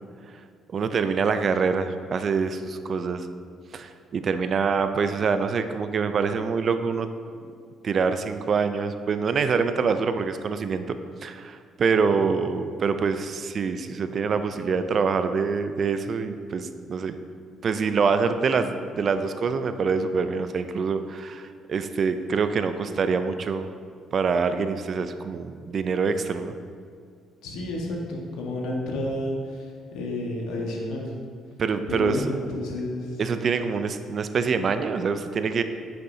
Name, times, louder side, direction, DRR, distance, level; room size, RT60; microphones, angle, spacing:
voice 1, 0.7-3.3 3.7-7.1 7.8-17.1 17.6-23.7 24.1-26.6 31.6-32.2 33.2-35.6, right 5 dB, 50° right, 9 dB, 0.5 m, -25 dB
voice 2, 27.4-31.1 31.9-33.2, left 1 dB, 80° left, -1 dB, 1.4 m, -31 dB
9.4 x 6.6 x 2.8 m, 2.2 s
supercardioid pair, 75°, 0 cm